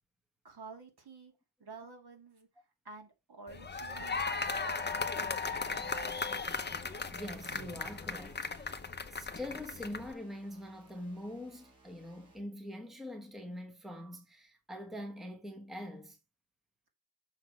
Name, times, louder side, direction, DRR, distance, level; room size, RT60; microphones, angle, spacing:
voice 1, 0.4-1.3 1.6-6.2, right 4 dB, 50° right, 2.4 m, -52 dB
sound 1, 3.5-10.1, left 4 dB, 20° left, 0.7 m, -37 dB
sound 2, 5.9-12.4, right 3 dB, 30° right, 5.0 m, -60 dB
voice 2, 7.1-16.2, left 1 dB, ahead, 1.3 m, -44 dB
6.5 x 6.0 x 4.7 m
wide cardioid pair, 140°, 48 cm